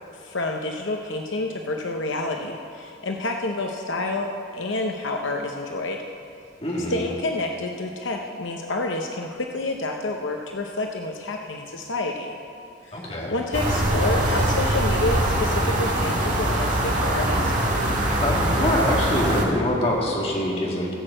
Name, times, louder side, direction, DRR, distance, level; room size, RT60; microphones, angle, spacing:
voice 1, 0.2-4.3 4.5-6.0 6.9-12.4 12.8-17.6, left 2 dB, 70° left, 2 dB, 0.8 m, -28 dB
voice 2, 6.6-7.0 12.9-13.3 18.2-21.0, left 1 dB, 30° left, -2 dB, 2.0 m, -25 dB
sound 1, 13.5-19.4, right 1 dB, 40° right, 1.8 m, -22 dB
16.0 x 6.4 x 7.7 m, 2.6 s
head